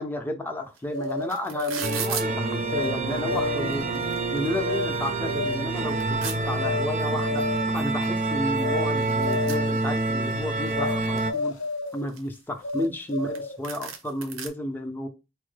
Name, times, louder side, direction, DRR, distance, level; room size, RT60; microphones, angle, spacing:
voice 1, 0.0-3.8 4.3-7.4 7.7-11.6 11.9-15.1, left 1 dB, 10° left, 0.5 m, -32 dB
sound 1, 0.8-0.9 1.0-2.3 3.1-3.2 3.6-4.4 4.8-4.9 5.3-6.4 7.6-7.7 8.0-8.1 8.3-10.3 10.7-11.4 11.9-13.1 13.3-13.4 13.6-14.5, right 7 dB, 80° right, 0.7 m, -36 dB
sound 2, 0.9-2.0 2.7-3.0 3.2-3.9 4.6-4.9 5.2-5.8 6.6-6.9 7.2-7.8 8.6-8.9 9.2-9.8 10.7-11.0 11.2-12.1 12.6-13.6, left 3 dB, 65° left, 0.5 m, -31 dB
sound 3, 1.8-11.3, right 2 dB, 45° right, 0.5 m, -27 dB
4.2 x 2.1 x 3.2 m
head